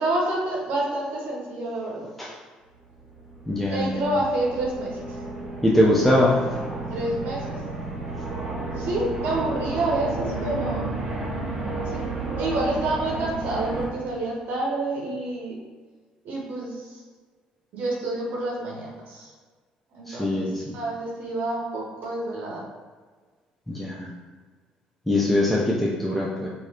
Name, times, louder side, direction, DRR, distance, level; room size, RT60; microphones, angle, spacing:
voice 1, 0.0-2.1 3.7-5.2 6.9-7.6 8.8-10.8 11.8-12.0 12.4-15.6 16.2-17.0 17.7-19.3 19.9-22.6, right 2 dB, 70° right, -3 dB, 0.7 m, -28 dB
sound 1, 2.9-13.9, right 2 dB, 20° right, 1.1 m, -32 dB
voice 2, 3.5-4.0 5.6-6.4 20.1-20.5 23.7-24.1 25.1-26.5, left 1 dB, 5° left, -4 dB, 0.5 m, -22 dB
3.1 x 2.5 x 2.7 m, 1.5 s
supercardioid pair, 65°, 3 cm